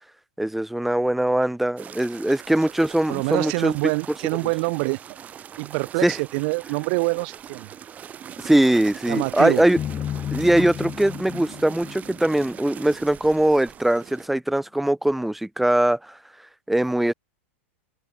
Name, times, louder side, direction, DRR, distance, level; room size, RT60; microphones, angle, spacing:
voice 1, 0.4-3.7 6.0-6.2 8.4-9.8 10.3-16.2 16.7-17.1, right 1 dB, ahead, 0.7 m, -21 dB
sound 1, 1.8-14.3, right 9 dB, 20° right, 3.4 m, -41 dB
voice 2, 3.1-5.2 5.6-7.7 9.1-9.6, right 32 dB, 45° right, 0.9 m, -25 dB
sound 2, 9.8-13.0, left 10 dB, 20° left, 1.7 m, -33 dB
open air
supercardioid pair, 155°, 7 cm